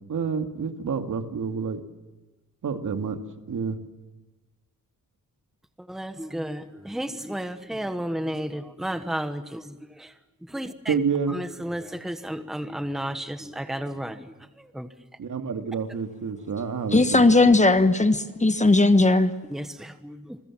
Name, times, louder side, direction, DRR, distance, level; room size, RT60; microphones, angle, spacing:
voice 1, 0.1-1.8 2.6-3.2 3.5-3.8 10.9-11.3 15.2-17.2, right 6 dB, 60° right, 7 dB, 2.3 m, -28 dB
voice 2, 5.8-11.0 11.3-14.9 19.5-20.4, right 1 dB, ahead, 9 dB, 1.2 m, -33 dB
voice 3, 16.9-19.3, left 2 dB, 20° left, 10 dB, 1.3 m, -18 dB
29.0 x 21.5 x 7.4 m, 1.1 s
wide cardioid pair, 170°, 34 cm